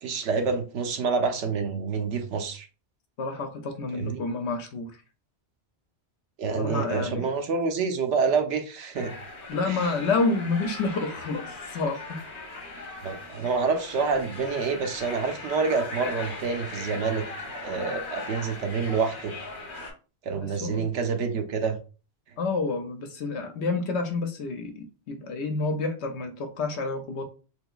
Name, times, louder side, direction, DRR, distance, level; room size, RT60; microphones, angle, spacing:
voice 1, 0.0-2.7 3.9-4.2 6.4-9.1 9.6-9.9 13.0-17.2 17.6-19.3 20.2-21.8, right 5 dB, 85° right, 1.0 m, -27 dB
voice 2, 3.2-4.9 6.6-7.3 9.5-12.2 20.6-20.8 22.4-27.2, left 3 dB, 75° left, 0.9 m, -29 dB
sound 1, 8.9-19.9, left 3 dB, 50° left, 1.2 m, -39 dB
3.6 x 2.9 x 2.3 m
omnidirectional pair, 1.2 m